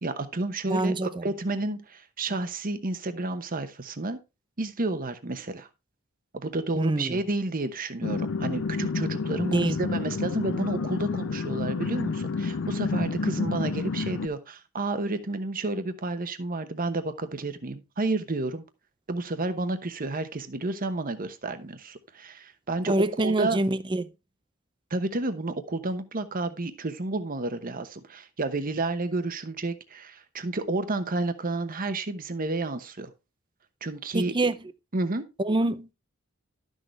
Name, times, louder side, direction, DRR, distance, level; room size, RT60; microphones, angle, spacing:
voice 1, 0.0-4.2 4.6-5.7 6.3-18.6 19.1-23.6 24.9-33.1 33.8-34.3 34.9-35.2, right 2 dB, 45° right, 1.0 m, -31 dB
voice 2, 0.7-1.2 6.8-7.2 9.5-9.8 22.9-24.1 34.1-34.6 35.4-35.9, right 2 dB, 25° right, 0.6 m, -26 dB
sound 1, 8.0-14.3, left 4 dB, 60° left, 0.5 m, -29 dB
12.0 x 6.5 x 3.2 m
head